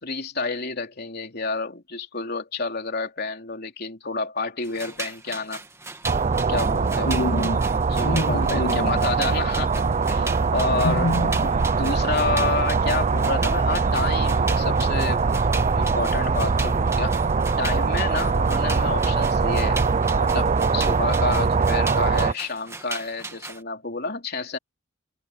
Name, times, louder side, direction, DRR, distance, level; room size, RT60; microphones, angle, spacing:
voice 1, 0.0-5.6 6.5-7.1 7.9-11.1 11.7-17.2 17.6-19.8 20.2-24.6, left 3 dB, 50° left, 3.4 m, -29 dB
sound 1, 4.6-23.6, right 3 dB, 15° right, 2.2 m, -37 dB
sound 2, 6.0-22.3, right 4 dB, 35° right, 0.5 m, -22 dB
voice 2, 7.0-7.7 8.0-9.0 10.8-11.6, left 2 dB, 75° left, 2.1 m, -27 dB
head